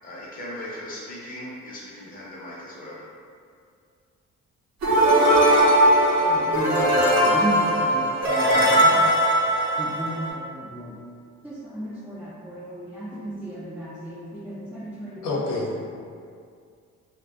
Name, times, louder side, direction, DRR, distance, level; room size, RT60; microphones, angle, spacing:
voice 1, 0.0-3.1, left 1 dB, 30° left, -7 dB, 0.7 m, -38 dB
sound 1, 4.8-10.3, right 1 dB, 60° right, 0.7 m, -19 dB
voice 2, 6.2-9.0 9.8-10.9 11.4-15.3, right 1 dB, 5° right, -10 dB, 0.3 m, -34 dB
voice 3, 15.2-15.8, left 2 dB, 85° left, -5 dB, 0.7 m, -27 dB
2.4 x 2.2 x 2.4 m, 2.2 s
cardioid pair, 90°, 30 cm